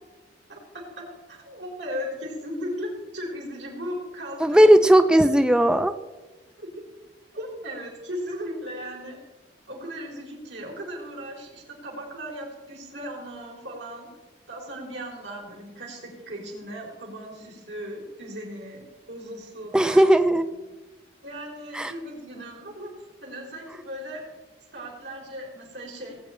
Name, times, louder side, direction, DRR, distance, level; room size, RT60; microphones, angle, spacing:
voice 1, 0.5-4.6 6.6-6.7 7.3-9.2 9.7-14.1 14.5-20.0 21.2-22.9 23.2-24.2 24.7-26.3, equal, 80° right, -1 dB, 3.9 m, -37 dB
voice 2, 4.4-5.9 19.7-20.5 21.7-21.9, right 1 dB, 5° right, 10 dB, 0.3 m, -17 dB
18.5 x 8.5 x 4.3 m, 1.2 s
head